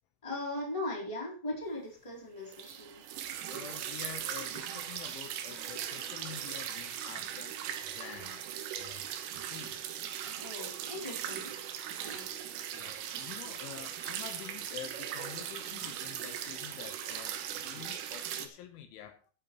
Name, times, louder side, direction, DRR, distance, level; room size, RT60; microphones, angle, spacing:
voice 1, 0.2-3.0 10.4-11.5 11.8-12.3, left 1 dB, 5° left, 3.3 m, -39 dB
sound 1, 2.5-18.5, right 10 dB, 85° right, 3.8 m, -39 dB
voice 2, 3.5-7.6 8.0-8.4 8.8-9.1 9.3-9.8 12.7-19.3, left 10 dB, 75° left, 3.3 m, -47 dB
21.5 x 8.4 x 3.1 m
omnidirectional pair, 5.8 m